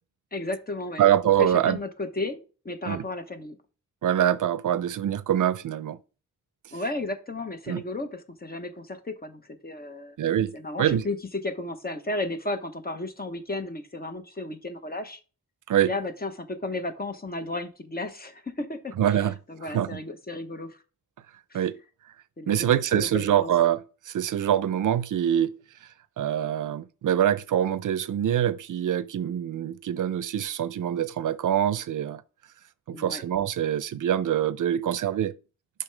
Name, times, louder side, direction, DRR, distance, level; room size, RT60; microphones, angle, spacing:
voice 1, 0.3-1.0 1.4-2.4 2.6-3.6 6.7-10.2 10.5-11.2 11.4-15.2 15.8-19.2 19.5-20.8 21.5-21.6 22.4-23.5 32.9-33.2, left 2 dB, 30° left, 0.9 m, -34 dB
voice 2, 1.0-1.8 2.9-3.0 4.0-6.0 7.7-7.8 10.2-11.1 15.7-15.9 19.0-20.0 21.5-21.8 22.5-25.6 26.2-32.2 32.9-35.3, right 10 dB, 80° right, 0.5 m, -25 dB
7.1 x 5.6 x 3.3 m
wide cardioid pair, 125°, 31 cm